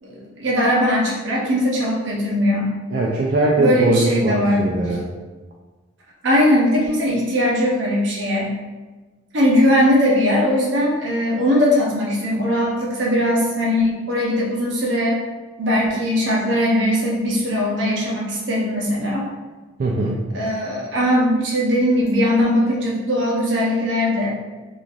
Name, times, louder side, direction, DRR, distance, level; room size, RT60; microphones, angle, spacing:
voice 1, 0.0-2.7 3.6-4.6 6.2-8.5 9.3-15.2 15.6-19.3 20.3-24.4, equal, 70° right, -3 dB, 0.7 m, -19 dB
voice 2, 2.9-5.0 19.8-20.2, right 2 dB, 50° right, -4 dB, 0.3 m, -20 dB
3.1 x 2.5 x 2.4 m, 1.3 s
head